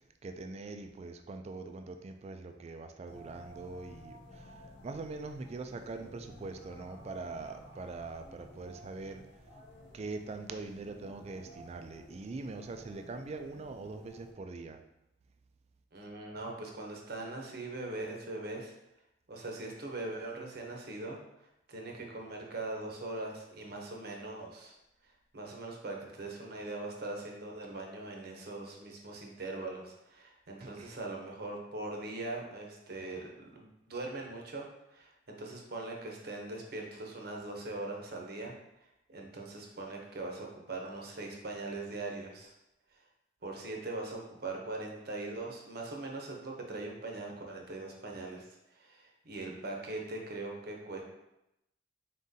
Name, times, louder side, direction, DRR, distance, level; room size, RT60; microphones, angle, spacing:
voice 1, 0.2-9.2 9.9-14.8 30.6-31.0, right 3 dB, 35° right, 6 dB, 0.3 m, -43 dB
sound 1, 3.0-14.3, equal, 75° left, 1.1 m, -54 dB
voice 2, 15.9-18.7 19.3-21.2 21.7-24.7 25.3-34.7 34.9-38.5 39.1-42.5 43.4-51.0, right 2 dB, 55° right, 0 dB, 0.7 m, -41 dB
4.1 x 3.7 x 2.7 m, 0.87 s
head